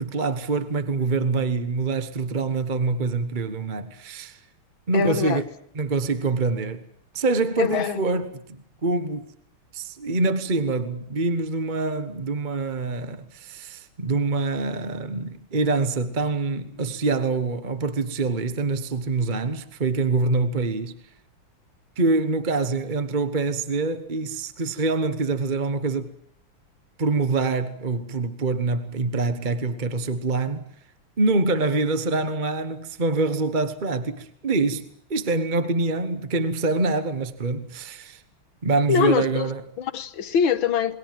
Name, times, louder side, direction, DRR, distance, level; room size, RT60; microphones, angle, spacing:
voice 1, 0.0-4.4 4.9-5.4 5.7-6.8 7.1-9.3 9.7-20.9 22.0-26.1 27.0-30.6 31.2-38.2 38.6-39.6, right 3 dB, 30° right, 1.1 m, -25 dB
voice 2, 4.9-5.4 7.6-8.0 38.9-39.5 39.8-41.0, left 7 dB, 70° left, 2.0 m, -23 dB
28.0 x 21.0 x 7.6 m
omnidirectional pair, 2.4 m